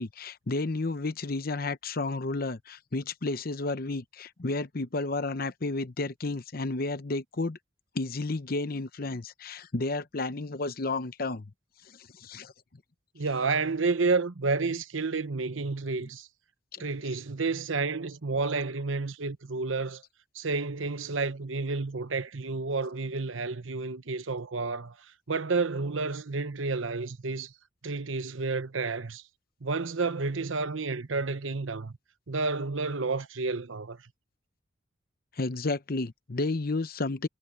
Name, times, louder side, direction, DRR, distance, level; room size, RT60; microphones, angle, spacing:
voice 1, 0.0-7.6 7.9-11.5 11.9-12.5 16.7-16.8 35.4-37.3, left 3 dB, 50° left, 0.8 m, -32 dB
voice 2, 13.1-16.3 16.8-20.0 20.3-27.5 27.8-29.2 29.6-31.9 32.3-34.0, right 4 dB, 85° right, 1.0 m, -30 dB
head